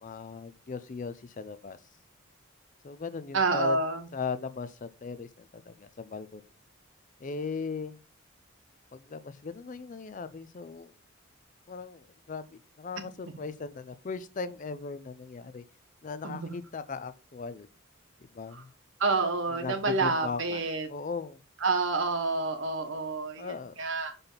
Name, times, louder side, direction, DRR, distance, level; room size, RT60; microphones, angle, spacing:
voice 1, 0.0-1.8 2.8-3.8 4.1-6.4 7.2-8.0 8.9-10.9 11.7-15.6 16.0-17.7 18.3-18.7 19.5-21.4 23.4-23.7, left 4 dB, 40° left, 0.4 m, -38 dB
voice 2, 3.3-4.0 16.2-16.4 18.5-18.6 19.0-20.9 21.6-24.2, right 3 dB, 65° right, 1.2 m, -28 dB
5.8 x 5.3 x 3.9 m
head